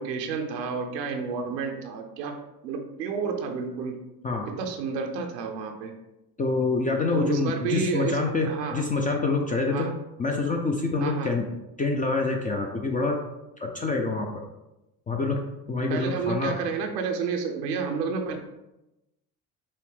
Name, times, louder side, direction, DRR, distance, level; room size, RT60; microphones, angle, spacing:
voice 1, 0.0-2.4 2.6-4.0 4.5-5.9 7.1-8.8 9.7-10.0 11.0-11.4 15.9-18.4, right 5 dB, 85° right, 4 dB, 0.6 m, -30 dB
voice 2, 6.4-9.9 10.2-11.5 11.8-13.2 13.6-14.3 15.1-15.4 15.7-16.5, left 3 dB, 20° left, 2 dB, 0.4 m, -26 dB
5.4 x 2.1 x 3.2 m, 0.94 s
hypercardioid pair, 55°, 48 cm